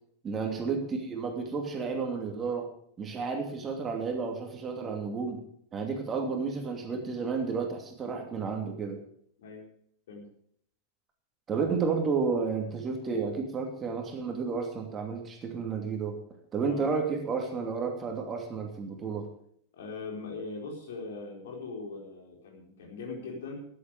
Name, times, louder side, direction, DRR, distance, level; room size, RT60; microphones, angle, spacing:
voice 1, 0.2-2.7 3.0-5.4 5.7-9.0 11.5-16.2 16.5-19.3, right 5 dB, 25° right, 2 dB, 2.8 m, -31 dB
voice 2, 19.7-23.7, left 3 dB, 60° left, 1 dB, 4.2 m, -40 dB
14.5 x 10.0 x 5.1 m, 0.65 s
figure-of-eight pair, 90°, 0 cm